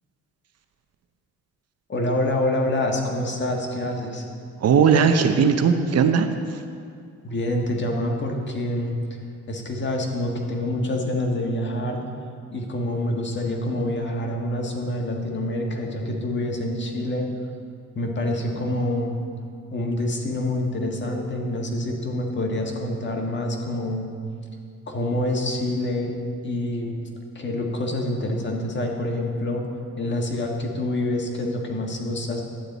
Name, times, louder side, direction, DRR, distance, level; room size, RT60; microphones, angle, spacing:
voice 1, 1.9-4.2 7.2-9.2 9.5-12.0 12.5-17.3 17.9-19.2 19.7-24.1 24.9-26.1 26.4-26.9 27.3-29.7 30.0-32.4, left 1 dB, 40° left, 1 dB, 1.6 m, -26 dB
voice 2, 4.6-6.6, right 6 dB, 55° right, 7 dB, 0.8 m, -18 dB
11.5 x 9.2 x 4.1 m, 2.3 s
cardioid pair, 90°, 30 cm